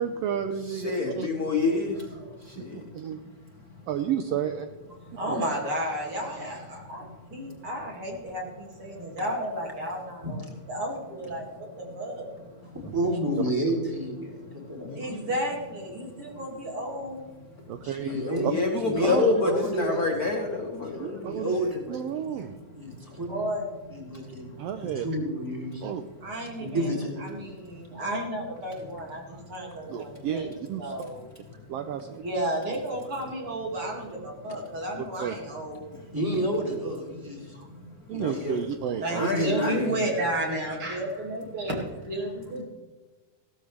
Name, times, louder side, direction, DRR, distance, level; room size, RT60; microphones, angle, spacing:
voice 1, 0.0-1.3 2.6-3.2 3.9-4.7 5.3-5.4 17.7-18.1 18.4-18.5 19.0-19.4 21.0-21.6 21.9-22.6 24.6-25.1 25.8-26.1 29.9-30.9 31.7-32.2 35.2-35.3 38.1-39.3, right 9 dB, 80° right, 8 dB, 1.5 m, -31 dB
voice 2, 0.6-3.9 4.9-5.2 7.1-7.5 9.0-9.2 10.2-10.3 10.7-10.8 12.6-12.9 13.4-13.5 14.2-15.2 16.0-16.4 17.6-21.7 22.2-22.4 22.7-23.2 24.1-24.8 25.8-26.1 27.8-28.0 28.7-29.0 29.3-29.9 31.2-31.7 35.8-36.2 37.1-38.6 39.1-39.9, left 3 dB, 80° left, 1 dB, 0.8 m, -32 dB
voice 3, 2.2-2.6 5.1-12.5 14.9-17.3 22.4-22.5 23.3-23.7 26.2-31.2 31.5-31.9 32.2-36.0 37.5-37.7 39.0-42.6, right 1 dB, 50° right, -1 dB, 3.1 m, -33 dB
voice 4, 12.7-14.9 17.8-18.5 18.9-20.0 20.9-22.0 22.8-23.5 23.9-24.6 24.8-25.8 26.6-27.2 36.1-37.6 38.1-38.4 39.2-40.0, right 1 dB, 5° right, -2 dB, 2.8 m, -30 dB
16.0 x 13.0 x 3.3 m, 1.3 s
omnidirectional pair, 3.4 m